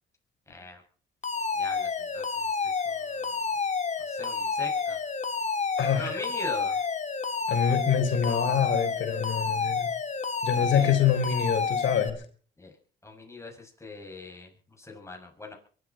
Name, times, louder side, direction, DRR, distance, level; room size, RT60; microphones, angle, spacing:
voice 1, 0.5-0.8 1.5-2.2 2.7-3.4 4.1-5.0 5.9-6.8 10.5-11.1 12.6-12.7 13.0-14.5 14.8-15.5, left 3 dB, 15° left, 2 dB, 6.9 m, -41 dB
Alarm, 1.2-12.1, left 5 dB, 35° left, 2.4 m, -30 dB
voice 2, 5.8-6.2 7.5-9.9 10.4-12.2, left 8 dB, 70° left, 6 dB, 3.9 m, -25 dB
23.5 x 13.0 x 4.4 m, 0.43 s
cardioid pair, 90°, 20 cm